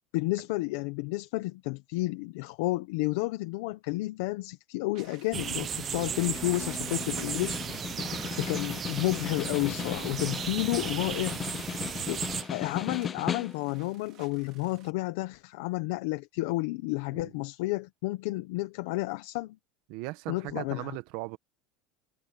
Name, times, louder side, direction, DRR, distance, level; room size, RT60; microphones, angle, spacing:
voice 1, 0.1-7.6 8.4-11.6 12.1-12.2 12.5-19.6 20.3-21.0, left 20 dB, 75° left, 1.0 m, -31 dB
sound 1, 4.9-14.9, right 14 dB, 50° right, 2.4 m, -51 dB
sound 2, 5.3-12.4, right 8 dB, 30° right, 1.1 m, -36 dB
Snare drum, 5.9-13.9, left 7 dB, 25° left, 0.5 m, -37 dB
voice 2, 19.9-21.4, right 21 dB, 65° right, 1.4 m, -38 dB
supercardioid pair, 140°, 0 cm